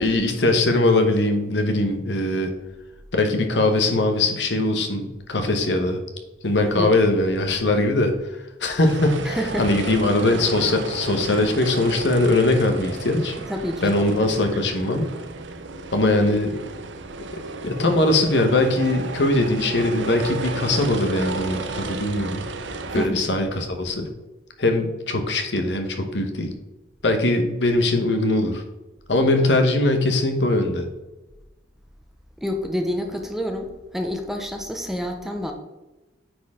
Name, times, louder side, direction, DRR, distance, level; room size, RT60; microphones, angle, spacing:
voice 1, 0.0-2.5 3.1-6.0 6.4-8.1 8.6-13.4 13.8-15.0 15.9-16.5 17.3-22.4 22.9-24.1 24.6-26.5 27.0-28.6 29.1-30.9, left 2 dB, 70° left, 5 dB, 1.1 m, -21 dB
voice 2, 6.6-6.9 9.2-9.8 13.4-14.3 22.9-23.3 32.4-35.5, equal, ahead, 4 dB, 0.7 m, -28 dB
sound 1, 8.8-23.1, right 3 dB, 80° right, 0.7 m, -33 dB
9.3 x 4.5 x 3.6 m, 1.1 s
head